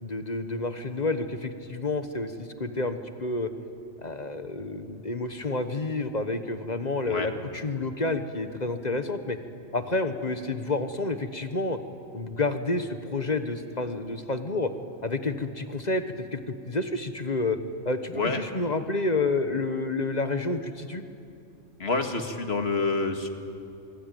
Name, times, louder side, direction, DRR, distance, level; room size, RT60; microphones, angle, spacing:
voice 1, 0.0-2.3 2.6-3.5 4.0-9.4 9.7-11.8 12.1-14.7 15.0-16.0 16.3-17.6 17.8-21.0, left 3 dB, 35° left, 8 dB, 1.3 m, -29 dB
voice 2, 21.8-23.3, left 3 dB, 60° left, 5 dB, 2.2 m, -27 dB
25.5 x 24.0 x 9.3 m, 2.5 s
omnidirectional pair, 1.2 m